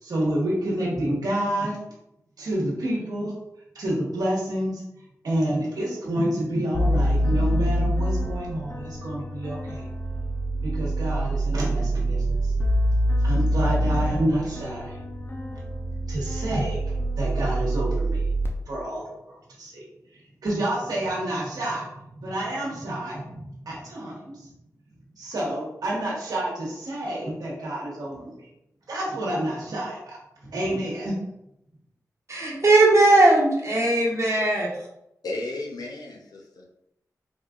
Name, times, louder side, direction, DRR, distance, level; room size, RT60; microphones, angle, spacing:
voice 1, 0.0-1.8 2.4-3.3 3.7-4.8 5.2-9.9 10.6-12.5 13.2-15.0 16.1-18.3 18.7-19.8 20.1-24.5 25.2-28.5 28.9-31.1, right 1 dB, 80° right, -5 dB, 1.2 m, -29 dB
sound 1, 6.7-18.5, right 1 dB, 35° left, 0.7 m, -25 dB
voice 2, 32.3-34.7, right 2 dB, 50° right, -4 dB, 1.2 m, -18 dB
voice 3, 35.2-36.7, left 2 dB, 85° left, 1 dB, 0.5 m, -34 dB
4.3 x 2.4 x 2.4 m, 0.82 s
cardioid pair, 50°, 6 cm